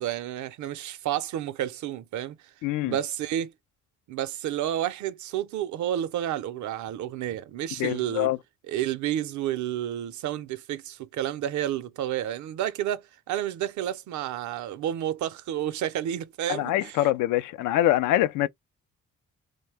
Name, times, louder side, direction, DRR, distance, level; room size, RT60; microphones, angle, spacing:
voice 1, 0.0-2.4 2.8-3.5 4.1-8.3 8.7-17.0, right 11 dB, 75° right, 0.6 m, -30 dB
voice 2, 2.6-3.0 7.8-8.4 16.5-18.5, left 14 dB, 85° left, 0.4 m, -24 dB
2.7 x 2.1 x 3.3 m
cardioid pair, 90°, 30 cm